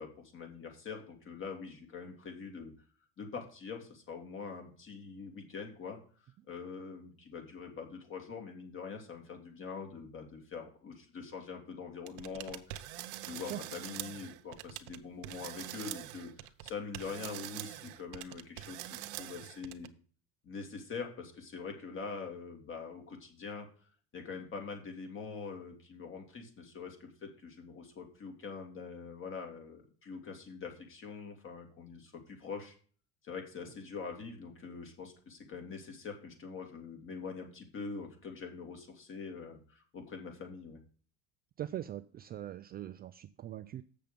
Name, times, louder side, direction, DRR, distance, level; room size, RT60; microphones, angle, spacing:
voice 1, 0.0-2.7 3.2-6.0 6.5-13.0 13.3-19.9 20.4-23.7 24.1-32.8 33.2-40.8, left 5 dB, 35° left, 4 dB, 2.7 m, -44 dB
sound 1, 12.1-15.0 15.2-19.9, right 15 dB, 85° right, 0.9 m, -44 dB
voice 2, 41.6-43.8, right 12 dB, 30° right, 10 dB, 0.4 m, -41 dB
7.6 x 6.8 x 5.1 m, 0.42 s
supercardioid pair, 125°, 34 cm